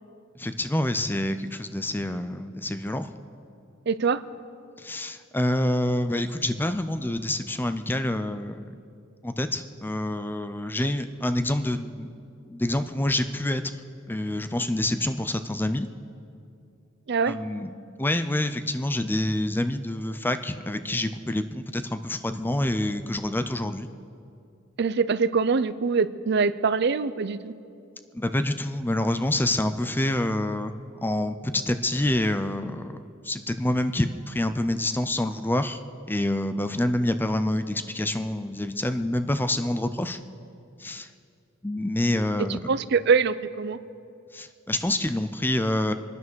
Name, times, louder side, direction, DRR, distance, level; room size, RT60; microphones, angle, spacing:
voice 1, 0.4-3.1 4.8-8.7 9.2-12.1 12.5-13.7 14.1-15.9 17.3-17.7 18.0-23.9 28.1-35.8 36.1-40.2 40.8-41.1 41.6-42.6 44.3-45.9, left 1 dB, 10° left, 10 dB, 0.5 m, -27 dB
voice 2, 3.9-4.2 17.1-17.4 24.8-27.5 42.4-43.8, right 5 dB, 55° right, 15 dB, 0.5 m, -24 dB
24.0 x 9.6 x 6.3 m, 2.5 s
head